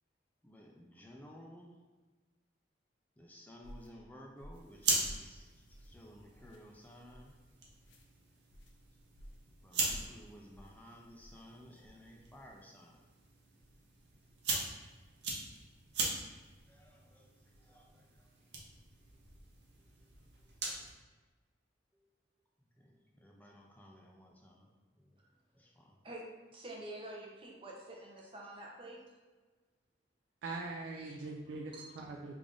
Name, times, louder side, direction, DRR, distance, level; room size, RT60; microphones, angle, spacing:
voice 1, 0.4-1.8 3.2-7.4 9.5-13.1 16.7-18.3 19.8-20.1 20.4-20.9 21.9-22.1 22.8-25.2 25.5-26.0, equal, 10° left, 0 dB, 0.3 m, -56 dB
sound 1, 3.6-3.9 4.4-4.7 5.0-5.3 5.7-6.0 6.4-6.6 7.1-7.3 7.8-8.1 8.5-8.7 9.1-9.5 9.8-10.1 10.5-10.7 11.2-11.4, equal, 80° left, 0.5 m, -51 dB
sound 2, 4.5-20.9, right 3 dB, 65° right, 0.7 m, -41 dB
voice 2, 26.5-29.0 31.1-31.2 31.5-31.9, right 1 dB, 30° right, -2 dB, 0.6 m, -48 dB
voice 3, 30.4-32.4, right 3 dB, 80° right, 1 dB, 0.3 m, -42 dB
3.3 x 2.5 x 3.6 m, 1.3 s
head